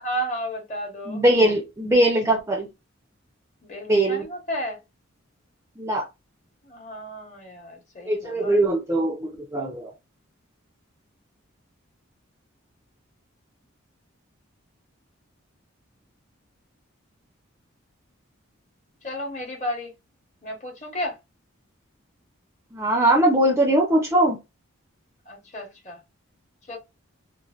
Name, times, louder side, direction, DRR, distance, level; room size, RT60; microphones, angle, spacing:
voice 1, 0.0-1.2 3.6-4.8 6.6-8.6 19.0-19.9 20.4-21.1 25.3-26.0 26.7-26.8, equal, 35° left, 1.0 m, -32 dB
voice 2, 1.1-2.7 3.9-4.2 5.8-6.1 8.1-9.9 22.7-24.4, right 1 dB, 15° right, 0.5 m, -21 dB
3.1 x 2.1 x 2.3 m
head